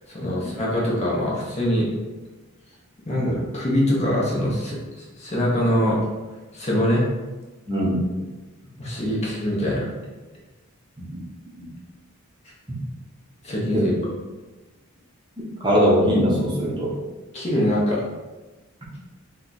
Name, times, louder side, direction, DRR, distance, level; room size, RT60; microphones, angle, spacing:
voice 1, 0.0-1.9 3.1-6.0 6.5-7.0 8.8-9.9 13.4-13.9 17.3-18.0, equal, 30° left, -5 dB, 0.7 m, -23 dB
voice 2, 15.6-16.9, equal, 20° right, -6 dB, 0.6 m, -21 dB
2.8 x 2.2 x 3.8 m, 1.2 s
head